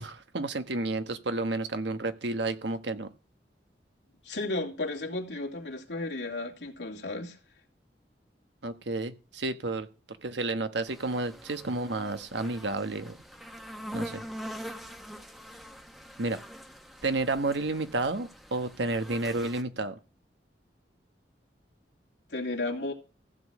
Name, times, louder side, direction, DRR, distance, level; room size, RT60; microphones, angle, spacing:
voice 1, 0.0-3.1 8.6-9.9 10.2-13.2 13.9-14.3 16.2-16.4 17.0-20.0, right 2 dB, 90° right, 1.3 m, -31 dB
voice 2, 4.2-7.4 22.3-22.9, left 2 dB, 85° left, 2.6 m, -33 dB
sound 1, 10.9-19.6, equal, ahead, 1.0 m, -44 dB
15.0 x 5.2 x 8.4 m
head